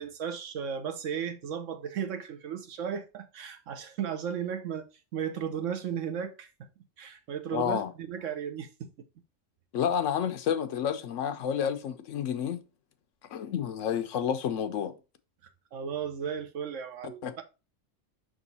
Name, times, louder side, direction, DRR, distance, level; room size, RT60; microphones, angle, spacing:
voice 1, 0.0-6.5 7.0-8.9 15.7-17.2, right 8 dB, 85° right, 1.2 m, -35 dB
voice 2, 7.5-7.9 9.7-12.6 13.3-15.0 17.2-17.4, left 8 dB, 80° left, 1.0 m, -30 dB
6.0 x 3.9 x 4.0 m
omnidirectional pair, 1.3 m